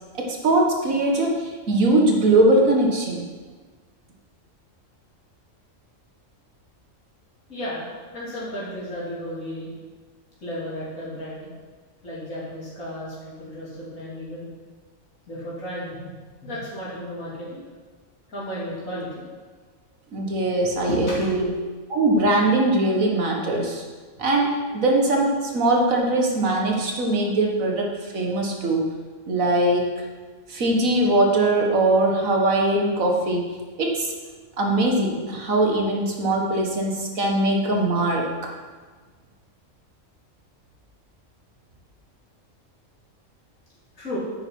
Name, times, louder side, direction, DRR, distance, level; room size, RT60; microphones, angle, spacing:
voice 1, 0.1-3.3 20.1-21.5 21.9-23.8 24.2-28.8 29.3-30.1 30.5-33.5 33.8-34.1 34.6-38.3, right 2 dB, 90° right, 0 dB, 2.0 m, -21 dB
voice 2, 7.5-7.8 8.1-9.7 10.4-11.5 12.0-14.5 15.3-16.1 16.4-17.6 18.3-19.2 20.4-21.3 44.0-44.2, equal, 90° left, -8 dB, 3.2 m, -33 dB
9.6 x 9.1 x 4.6 m, 1.4 s
omnidirectional pair, 1.4 m